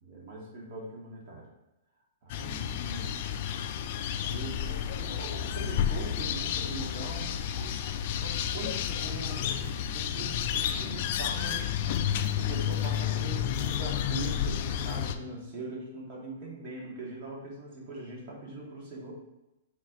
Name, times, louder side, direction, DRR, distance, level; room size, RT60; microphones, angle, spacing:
voice 1, 0.0-1.5 2.2-3.2 4.2-7.8 8.2-19.1, right 2 dB, 45° right, -3 dB, 1.6 m, -42 dB
sound 1, 2.3-15.1, left 9 dB, 50° left, 0.3 m, -31 dB
4.1 x 2.7 x 4.5 m, 0.95 s
hypercardioid pair, 140°, 0 cm